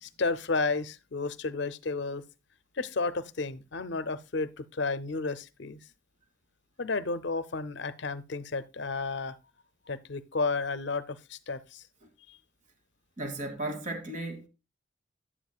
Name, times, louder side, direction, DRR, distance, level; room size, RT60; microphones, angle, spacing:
voice 1, 0.0-2.2 2.7-5.8 6.8-9.4 9.9-11.8 12.3-12.4, left 3 dB, 60° left, 0.6 m, -32 dB
voice 2, 13.2-14.5, right 1 dB, 40° right, 1.4 m, -35 dB
10.0 x 9.1 x 2.3 m
head